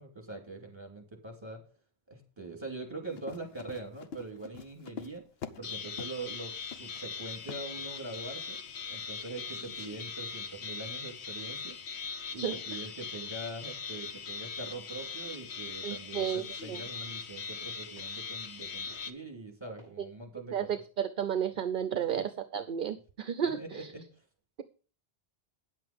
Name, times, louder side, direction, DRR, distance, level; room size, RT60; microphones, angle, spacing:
voice 1, 0.0-1.6 2.1-5.2 5.6-8.6 8.9-11.7 12.3-20.7 21.9-22.2 23.4-24.2, right 2 dB, 25° right, 2 dB, 2.8 m, -43 dB
Run, 3.1-5.7 6.0-6.2 6.7-7.0 7.5-7.6, left 6 dB, 70° left, 1.0 m, -44 dB
sound 1, 5.6-19.1, left 5 dB, 85° left, 1.2 m, -40 dB
Walk footsteps, 12.5-12.8 13.4-13.6 14.3-14.5 15.2-15.4 16.2-16.4 17.1-17.2 18.0-18.2 18.9-19.1 19.8-20.0, left 2 dB, 30° left, 7.2 m, -58 dB
voice 2, 15.8-16.4 16.7-16.8 20.5-23.8, right 8 dB, 55° right, 12 dB, 0.8 m, -32 dB
9.7 x 7.6 x 5.2 m, 0.38 s
omnidirectional pair, 1.1 m